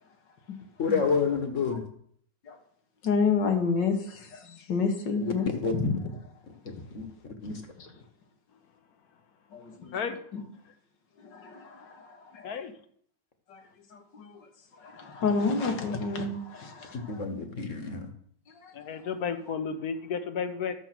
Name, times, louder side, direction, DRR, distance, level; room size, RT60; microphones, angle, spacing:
voice 1, 0.8-1.8 5.2-5.3 5.6-5.7 6.7-7.6 17.1-18.1, left 5 dB, 45° left, 1.8 m, -29 dB
voice 2, 3.0-5.5 5.7-6.1 7.8-7.9 9.5-10.4 11.2-12.6 13.5-13.6 13.9-14.3 14.8-17.2 18.6-18.7, left 4 dB, 80° left, 2.2 m, -30 dB
voice 3, 18.7-20.7, left 6 dB, 60° left, 1.3 m, -32 dB
12.0 x 7.4 x 6.0 m
omnidirectional pair, 1.9 m